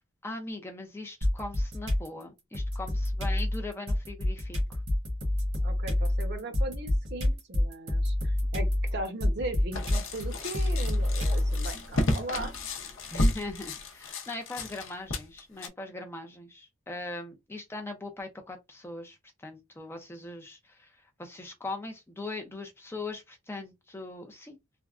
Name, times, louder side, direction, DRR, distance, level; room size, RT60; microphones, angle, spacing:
voice 1, 0.2-4.8 13.1-24.6, left 2 dB, 10° left, 0.4 m, -40 dB
Don Gorgon (Drums), 1.2-2.1 2.5-11.7, left 1 dB, 70° right, 1.3 m, -28 dB
voice 2, 5.6-12.5, right 1 dB, 50° right, 0.8 m, -38 dB
sound 1, 9.7-15.7, left 1 dB, 70° left, 0.7 m, -32 dB
3.4 x 2.1 x 2.4 m
head